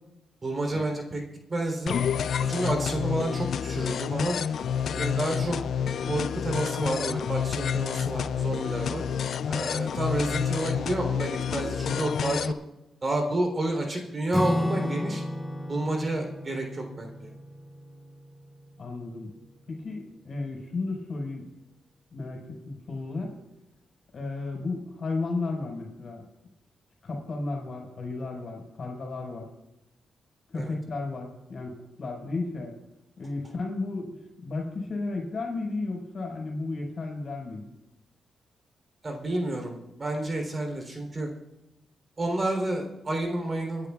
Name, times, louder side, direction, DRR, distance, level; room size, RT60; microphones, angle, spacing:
voice 1, 0.4-1.2 1.5-2.0 2.4-4.4 4.9-9.0 9.5-12.5 13.0-15.2 15.7-17.3 30.5-30.7 39.0-41.3 42.2-43.9, right 2 dB, 35° right, 2 dB, 3.6 m, -30 dB
sound 1, 1.9-12.5, left 7 dB, 70° left, 0.4 m, -29 dB
Acoustic guitar / Strum, 14.3-19.1, left 1 dB, 10° left, 0.7 m, -33 dB
voice 2, 18.8-19.3 19.7-21.5 22.1-23.4 24.1-26.2 27.0-29.4 30.5-32.7 33.2-34.1 34.4-37.7, left 3 dB, 55° left, 0 dB, 4.8 m, -33 dB
29.5 x 10.5 x 2.4 m, 0.95 s
cardioid pair, 80°, 0 cm